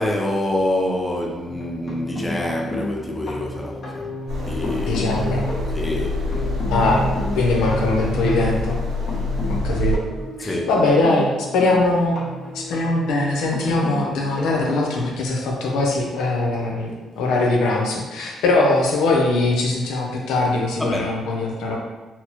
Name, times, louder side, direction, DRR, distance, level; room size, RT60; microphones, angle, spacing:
voice 1, 0.0-4.1 4.4-5.0 5.7-6.2 10.4-10.7 20.8-21.1, left 1 dB, 10° left, 0.5 m, -26 dB
sound 1, 1.5-15.5 16.7-16.8 17.1-17.3, left 1 dB, 55° left, 1.2 m, -31 dB
sound 2, 4.3-9.9, left 1 dB, 90° right, 1.5 m, -26 dB
voice 2, 4.8-5.5 6.7-7.1 7.3-8.8 9.6-10.0 10.4-12.2 12.5-21.8, left 2 dB, 85° left, 0.6 m, -21 dB
4.3 x 2.0 x 2.9 m
cardioid pair, 90°, 0 cm